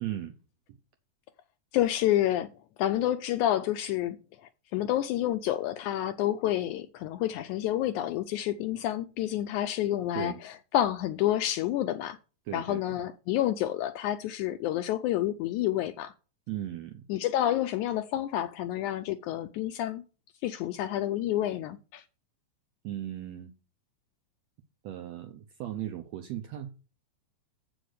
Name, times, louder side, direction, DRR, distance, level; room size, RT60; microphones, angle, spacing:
voice 1, 0.0-0.3 10.1-10.4 12.4-13.0 16.5-17.0 22.8-23.5 24.8-26.7, right 12 dB, 80° right, 1.5 m, -37 dB
voice 2, 1.7-2.5 2.8-4.2 4.7-12.2 12.5-16.1 17.1-20.0 20.4-22.0, left 12 dB, 80° left, 1.7 m, -29 dB
7.8 x 5.0 x 6.4 m
omnidirectional pair, 3.8 m